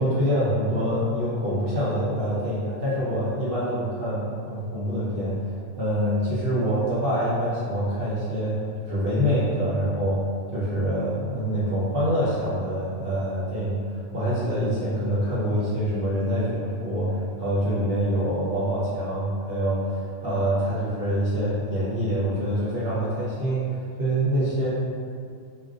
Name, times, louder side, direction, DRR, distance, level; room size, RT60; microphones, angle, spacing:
voice 1, 0.0-10.2 10.5-24.7, equal, 55° right, -9 dB, 0.8 m, -25 dB
2.5 x 2.2 x 3.7 m, 2.2 s
omnidirectional pair, 1.3 m